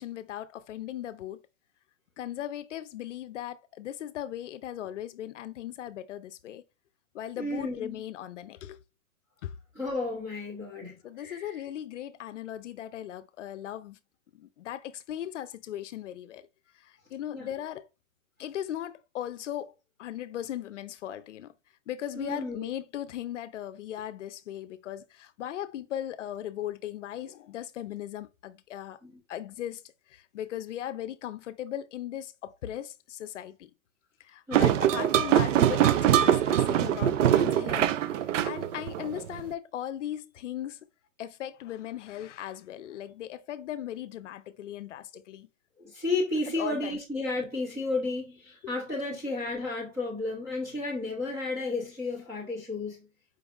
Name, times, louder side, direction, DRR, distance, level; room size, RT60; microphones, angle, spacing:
voice 1, 0.0-1.4 2.2-6.6 7.1-8.8 9.4-9.5 11.0-14.0 14.3-16.5 16.7-17.9 18.4-19.7 20.0-21.5 21.9-29.0 29.3-29.8 30.1-33.7 34.2-38.0 38.2-40.8 41.2-45.5 46.6-47.0 49.1-49.2, left 11 dB, 65° left, 0.5 m, -38 dB
voice 2, 7.4-8.0 9.7-11.6 17.3-17.5 22.2-22.7 29.0-29.2 34.5-34.8 45.8-53.1, left 2 dB, 5° right, 0.5 m, -32 dB
sound 1, 34.5-39.4, right 11 dB, 70° right, 0.5 m, -23 dB
4.7 x 2.3 x 3.5 m
hypercardioid pair, 155°, 39 cm